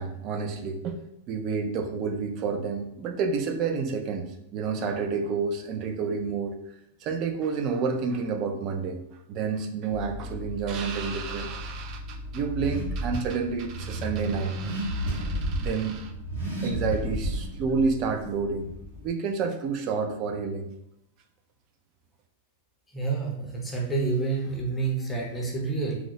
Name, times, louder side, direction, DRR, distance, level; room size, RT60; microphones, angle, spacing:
voice 1, 0.0-6.6 7.0-9.0 9.3-16.1 16.6-18.8 19.0-20.7, right 5 dB, 30° right, 5 dB, 0.4 m, -29 dB
Car / Accelerating revving vroom, 9.9-19.1, right 1 dB, 65° right, 1.4 m, -33 dB
voice 2, 22.9-26.0, right 4 dB, 10° left, -2 dB, 0.6 m, -28 dB
2.9 x 2.0 x 3.8 m, 0.81 s
supercardioid pair, 160°, 0 cm